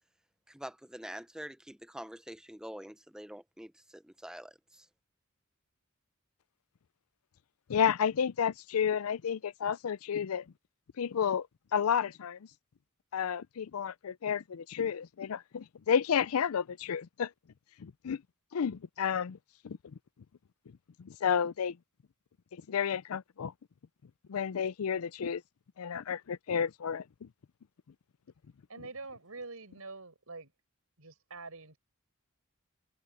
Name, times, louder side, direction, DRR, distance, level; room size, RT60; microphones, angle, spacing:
voice 1, 0.5-4.9, right 1 dB, 5° right, 0.7 m, -46 dB
voice 2, 7.7-10.5 11.0-11.5 11.7-12.5 13.1-17.3 17.8-18.2 18.5-19.4 19.6-19.8 21.0-21.8 22.5-23.5 24.3-25.4 25.8-27.3, left 7 dB, 85° left, 0.5 m, -31 dB
voice 3, 28.7-30.5 31.0-31.8, right 3 dB, 85° right, 5.5 m, -45 dB
head